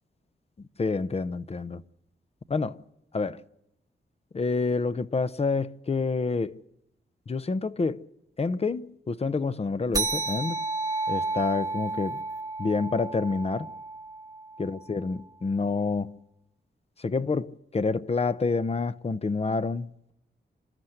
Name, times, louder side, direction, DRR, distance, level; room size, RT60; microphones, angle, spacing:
voice 1, 0.8-1.8 2.5-2.8 3.1-3.4 4.3-6.6 7.3-8.0 8.4-10.6 11.1-12.2 12.6-13.7 14.6-16.2 17.0-20.1, left 4 dB, 35° left, 0.7 m, -28 dB
sound 1, 9.9-14.9, right 3 dB, 20° right, 1.1 m, -32 dB
27.5 x 13.5 x 7.9 m
wide cardioid pair, 135°, 19 cm